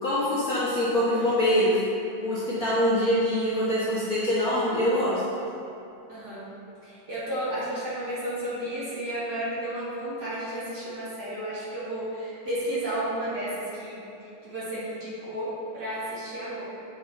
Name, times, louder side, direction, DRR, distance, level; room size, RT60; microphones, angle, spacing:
voice 1, 0.0-1.8 2.2-5.2, left 1 dB, 70° left, -10 dB, 0.8 m, -24 dB
voice 2, 6.1-6.5 6.8-14.0 14.4-16.6, right 1 dB, 35° right, -10 dB, 2.3 m, -32 dB
8.5 x 5.7 x 4.5 m, 2.8 s
omnidirectional pair, 3.7 m